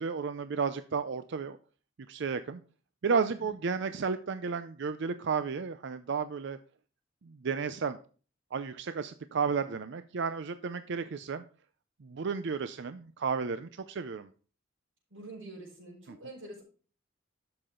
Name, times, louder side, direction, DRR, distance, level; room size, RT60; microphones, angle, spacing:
voice 1, 0.0-1.6 2.1-2.6 3.0-6.6 7.3-8.0 8.5-11.4 12.0-14.3, right 5 dB, 65° right, 11 dB, 0.5 m, -32 dB
voice 2, 15.1-16.6, right 2 dB, 90° right, -6 dB, 5.7 m, -46 dB
12.0 x 6.8 x 3.8 m, 0.39 s
head